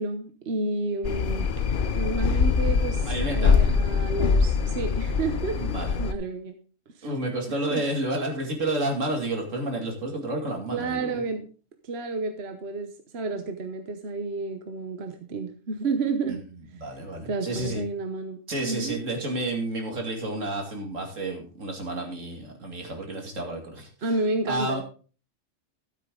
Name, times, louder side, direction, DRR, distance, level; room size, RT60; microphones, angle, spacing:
voice 1, 0.0-1.6 1.9-5.6 6.0-6.6 7.0-7.1 7.5-7.8 10.7-11.5 11.8-16.4 17.2-19.0 24.0-24.8, right 3 dB, 55° right, 6 dB, 1.2 m, -31 dB
sound 1, 1.0-6.1, left 5 dB, 50° left, 0.8 m, -23 dB
voice 2, 3.0-3.6 5.5-6.0 7.0-11.2 16.3-16.4 16.8-17.8 18.5-23.9 24.5-24.8, right 1 dB, 75° right, 2 dB, 2.8 m, -30 dB
13.0 x 8.4 x 3.8 m, 0.37 s
omnidirectional pair, 1.3 m